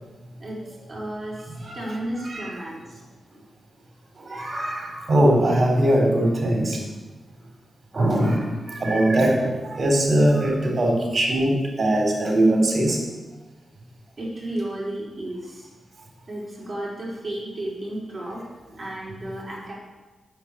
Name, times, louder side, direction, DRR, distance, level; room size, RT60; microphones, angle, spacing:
voice 1, 0.4-3.0 14.2-15.7 16.3-18.4 18.8-19.7, right 1 dB, 30° right, -4 dB, 5.0 m, -33 dB
voice 2, 1.5-1.9 2.2-2.5 4.2-6.8 7.9-13.0, right 1 dB, 50° right, 1 dB, 3.9 m, -21 dB
9.8 x 7.8 x 8.7 m, 1.2 s
cardioid pair, 75°, 0 cm